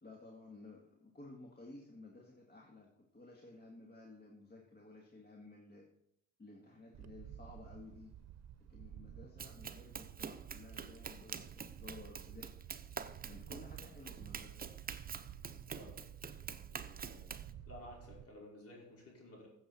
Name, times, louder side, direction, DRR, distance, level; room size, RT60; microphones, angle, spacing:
voice 1, 0.0-5.8 6.4-8.1 8.6-12.5 13.2-14.7, left 2 dB, 35° left, -1 dB, 2.0 m, -55 dB
Wind, 6.9-18.2, right 10 dB, 60° right, 0.8 m, -52 dB
Run, 9.4-17.5, right 6 dB, 30° right, 0.7 m, -47 dB
voice 2, 15.7-16.0 16.7-17.3 17.7-19.5, left 1 dB, 50° left, -3 dB, 5.3 m, -54 dB
15.0 x 7.4 x 4.4 m, 0.80 s
cardioid pair, 90°, 30 cm